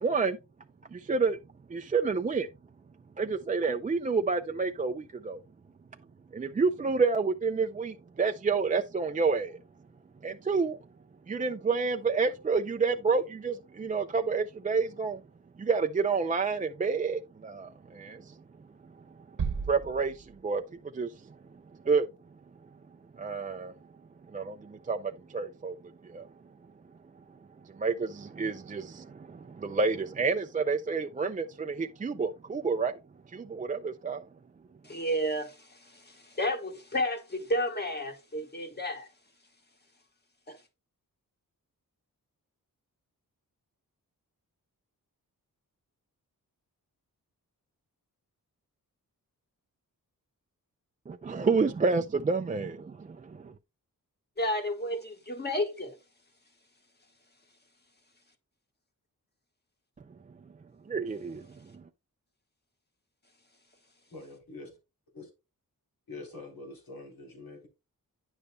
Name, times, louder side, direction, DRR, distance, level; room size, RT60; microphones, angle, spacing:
voice 1, 0.0-0.4 0.9-1.4 1.7-2.5 3.2-5.4 6.3-9.6 10.2-10.8 11.3-15.2 15.6-18.4 19.7-21.3 21.8-22.1 23.2-23.7 24.3-25.8 26.0-26.3 27.6-33.0 33.3-34.3 51.1-53.5 60.9-61.5 61.7-61.8, right 4 dB, 25° right, 0.4 m, -29 dB
sound 1, 19.4-20.8, right 6 dB, 65° right, 1.0 m, -35 dB
voice 2, 34.8-39.1 40.5-40.6 54.4-56.0, equal, 30° left, 1.5 m, -32 dB
voice 3, 64.1-64.8 65.1-65.3 66.1-67.7, left 2 dB, 80° left, 3.7 m, -45 dB
9.8 x 6.7 x 2.2 m
wide cardioid pair, 110°, 35 cm